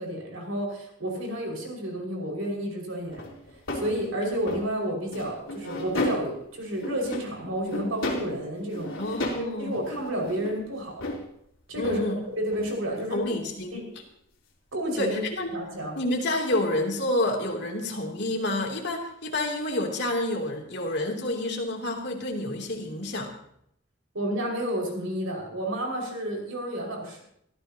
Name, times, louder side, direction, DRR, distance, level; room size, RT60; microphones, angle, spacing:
voice 1, 0.0-3.2 3.7-9.2 9.6-11.0 11.7-12.0 12.4-13.3 13.7-13.8 14.7-15.2 15.5-16.0 24.1-27.2, equal, 85° right, 0 dB, 5.5 m, -31 dB
sound 1, 3.1-4.7 5.1-6.4 6.7-7.4 7.7-8.4 8.7-9.5 9.8-11.3 11.7-12.0 12.4-12.8 13.4-13.5 16.0-16.1, left 1 dB, 80° left, 3.5 m, -33 dB
voice 2, 9.0-9.8 11.8-12.2 13.1-13.8 15.0-15.6 15.9-23.3, left 1 dB, 55° left, 0 dB, 3.0 m, -29 dB
24.5 x 14.5 x 2.9 m, 0.71 s
head